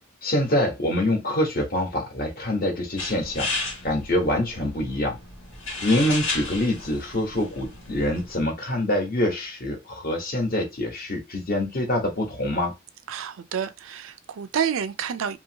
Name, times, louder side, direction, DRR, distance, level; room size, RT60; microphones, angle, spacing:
voice 1, 0.2-3.5 3.8-5.2 5.8-12.7, left 1 dB, 50° left, 1.1 m, -25 dB
sound 1, 3.0-8.4, left 2 dB, 90° left, 1.6 m, -34 dB
voice 2, 13.1-15.4, right 8 dB, 90° right, 0.4 m, -29 dB
2.9 x 2.7 x 2.8 m
head